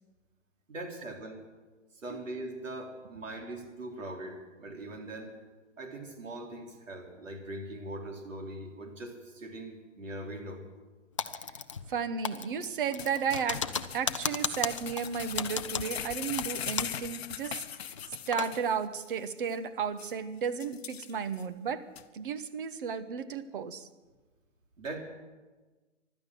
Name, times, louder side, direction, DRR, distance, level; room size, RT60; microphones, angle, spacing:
voice 1, 0.7-1.5 1.9-5.3 5.8-10.7 24.8-25.0, right 1 dB, 85° right, 2 dB, 3.8 m, -41 dB
Typing, 11.2-12.0 12.2-17.1 17.3-17.4 17.9-18.5, left 6 dB, 25° left, 0.4 m, -35 dB
voice 2, 11.9-13.7 13.9-17.9 18.3-21.8 22.1-23.9, right 6 dB, 45° right, 12 dB, 1.1 m, -33 dB
sound 1, 13.0-18.7 19.0-19.1 19.5-19.6 20.0-20.1 20.6-21.4 21.9-22.0, left 9 dB, 55° left, 0.9 m, -40 dB
15.5 x 12.0 x 7.7 m, 1.3 s
hypercardioid pair, 155°, 38 cm